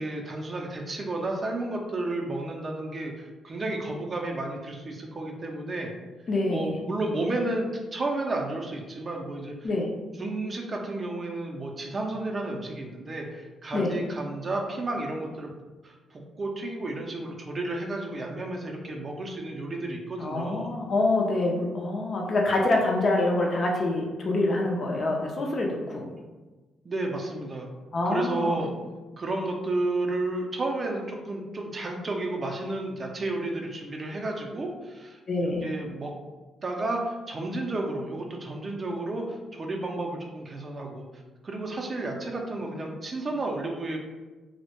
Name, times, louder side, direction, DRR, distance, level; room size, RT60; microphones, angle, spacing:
voice 1, 0.0-5.9 6.5-9.7 10.2-15.5 15.8-20.7 26.8-27.7 28.1-28.7 29.2-35.2 35.6-36.1 36.6-41.1 41.4-44.0, right 2 dB, 35° right, 1 dB, 0.4 m, -32 dB
voice 2, 6.3-6.8 9.6-9.9 13.7-14.0 20.2-26.1 27.9-28.6 35.3-35.7, left 2 dB, 45° left, 0 dB, 0.4 m, -26 dB
2.1 x 2.0 x 2.9 m, 1.2 s
cardioid pair, 90°, 0 cm